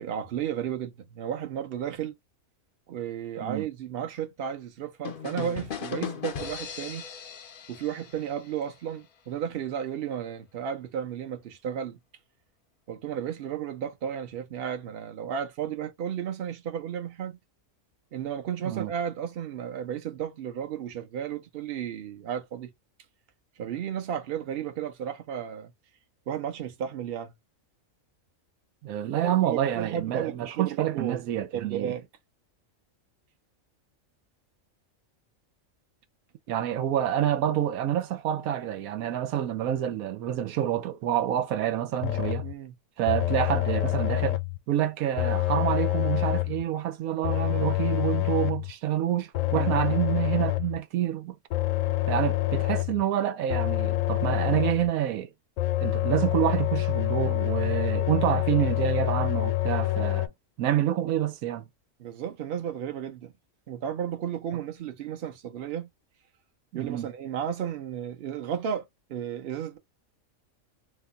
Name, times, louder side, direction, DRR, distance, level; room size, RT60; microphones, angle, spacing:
voice 1, 0.0-2.1 2.9-7.0 7.7-12.0 12.9-17.4 18.1-22.7 23.6-25.7 26.3-27.3 29.1-32.0 42.4-42.7 49.5-49.8 62.0-63.3 63.7-65.9 66.7-69.8, right 9 dB, 50° right, 0.8 m, -33 dB
sound 1, 5.0-8.8, left 7 dB, 55° left, 0.6 m, -37 dB
voice 2, 28.8-31.9 36.5-42.5 43.0-44.4 44.7-51.3 52.1-55.3 55.8-60.3 60.6-61.7 66.7-67.1, right 11 dB, 85° right, 1.1 m, -28 dB
sound 2, 42.0-42.5 43.1-44.6 45.2-46.6 47.2-48.7 49.3-50.8 51.5-53.0 53.5-54.9 55.6-60.3, left 17 dB, 70° left, 1.0 m, -27 dB
2.8 x 2.3 x 3.7 m
omnidirectional pair, 1.5 m